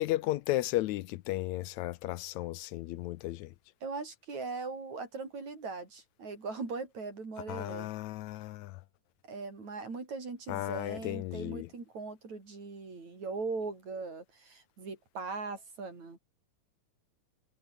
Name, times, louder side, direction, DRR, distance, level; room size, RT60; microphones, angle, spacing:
voice 1, 0.0-3.5 7.5-8.8 10.5-11.7, left 16 dB, 80° left, 2.0 m, -34 dB
voice 2, 3.8-7.9 9.3-16.2, right 4 dB, 70° right, 7.5 m, -40 dB
omnidirectional pair, 3.3 m